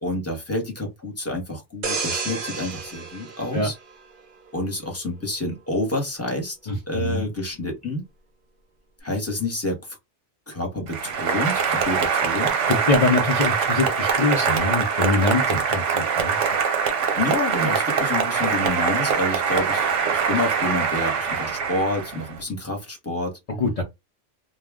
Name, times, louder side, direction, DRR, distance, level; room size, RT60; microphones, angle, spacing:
voice 1, 0.0-3.7 4.5-6.6 6.9-8.0 9.0-10.0 10.5-12.6 17.2-23.4, left 2 dB, 15° left, 1.0 m, -28 dB
sound 1, 1.8-4.5 5.0-5.2, right 4 dB, 50° right, 0.8 m, -31 dB
voice 2, 6.7-7.3 12.7-16.4 23.5-23.8, left 3 dB, 45° left, 0.5 m, -23 dB
Applause, 10.9-22.4, right 6 dB, 90° right, 1.1 m, -23 dB
2.3 x 2.2 x 3.5 m
omnidirectional pair, 1.2 m